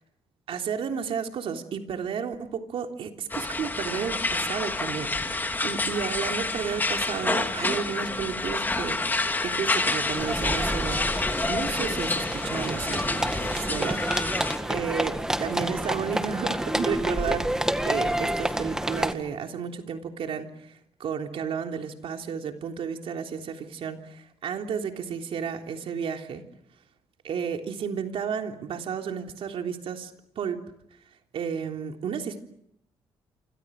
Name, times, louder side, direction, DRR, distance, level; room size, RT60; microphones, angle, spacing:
voice 1, 0.5-11.0 11.5-14.3 14.7-26.4 27.2-30.6 31.3-32.4, right 7 dB, 70° right, 4 dB, 3.5 m, -32 dB
sound 1, 3.3-14.6, left 2 dB, 20° left, 2.7 m, -28 dB
sound 2, 10.2-19.1, right 1 dB, 5° right, 2.0 m, -29 dB
28.5 x 26.0 x 6.5 m, 0.75 s
cardioid pair, 110°, 10 cm